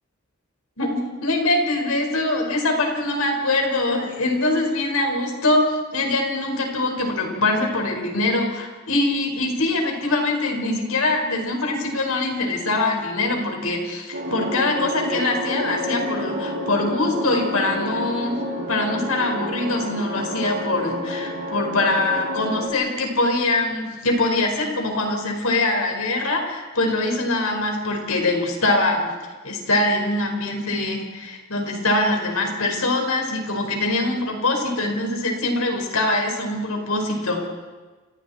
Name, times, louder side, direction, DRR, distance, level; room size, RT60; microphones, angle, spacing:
voice 1, 0.8-29.1 29.4-37.4, left 2 dB, 85° left, 2 dB, 5.1 m, -23 dB
sound 1, 14.1-22.7, equal, 70° right, 6.3 m, -29 dB
29.0 x 27.0 x 4.4 m, 1.3 s
head